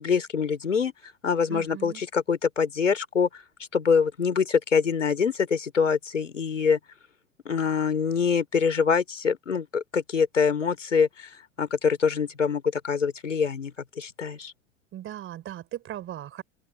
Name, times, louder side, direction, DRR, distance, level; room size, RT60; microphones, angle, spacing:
voice 1, 0.0-3.4 3.7-6.8 7.4-11.3 11.6-14.5, left 6 dB, 80° left, 3.3 m, -25 dB
voice 2, 1.5-2.0 14.9-16.4, right 12 dB, 35° right, 4.0 m, -38 dB
open air
figure-of-eight pair, 85°, 36 cm